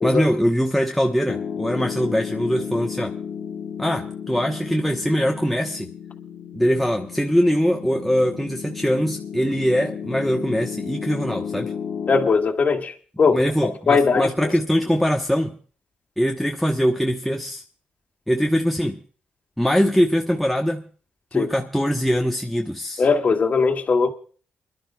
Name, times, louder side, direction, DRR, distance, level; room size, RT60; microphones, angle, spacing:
voice 1, 0.0-3.1 3.8-5.9 6.5-11.7 13.3-15.6 16.2-17.6 18.3-19.0 19.6-20.9 21.3-23.0, equal, ahead, 1.1 m, -22 dB
Piano, 1.3-12.3, left 7 dB, 65° left, 1.4 m, -33 dB
voice 2, 12.1-12.9 13.2-13.4 13.9-14.5 21.3-21.5 23.0-24.1, left 4 dB, 50° left, 1.9 m, -19 dB
29.0 x 11.5 x 2.3 m
cardioid pair, 65°, 3 cm